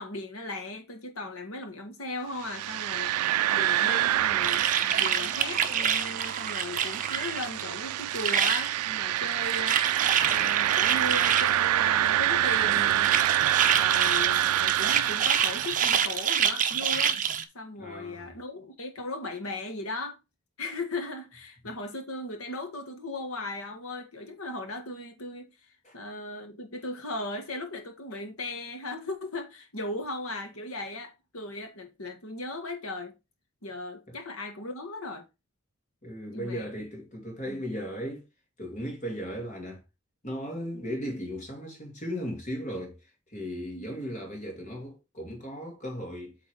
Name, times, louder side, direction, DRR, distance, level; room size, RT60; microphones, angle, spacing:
voice 1, 0.0-3.1 3.5-4.7 5.0-9.8 10.2-13.2 13.8-17.2 17.5-20.2 20.6-33.1 33.6-35.2 36.3-36.6 37.5-37.6 40.7-40.8 43.7-43.9, left 2 dB, 75° left, 1.6 m, -37 dB
sound 1, 2.4-16.4, right 13 dB, 90° right, 0.3 m, -27 dB
sound 2, 4.4-7.6 7.9-8.8 9.2-11.6 12.5-17.4, right 8 dB, 40° right, 0.7 m, -27 dB
voice 2, 17.8-18.3 25.8-25.9 34.1-34.2 36.0-38.2 38.6-39.8 40.2-46.4, equal, 35° left, 2.4 m, -36 dB
8.3 x 3.8 x 4.7 m
head